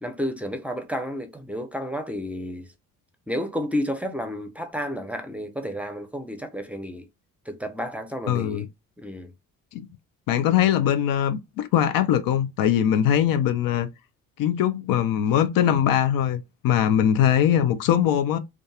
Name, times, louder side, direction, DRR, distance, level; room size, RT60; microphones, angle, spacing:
voice 1, 0.0-2.7 3.3-7.1 7.5-8.7 9.0-9.3 10.6-10.7, equal, 5° right, 0.7 m, -31 dB
voice 2, 8.3-8.7 9.7-9.8 10.3-13.9 14.4-18.4, left 10 dB, 60° left, 0.5 m, -21 dB
2.6 x 2.3 x 2.3 m
hypercardioid pair, 60°, 38 cm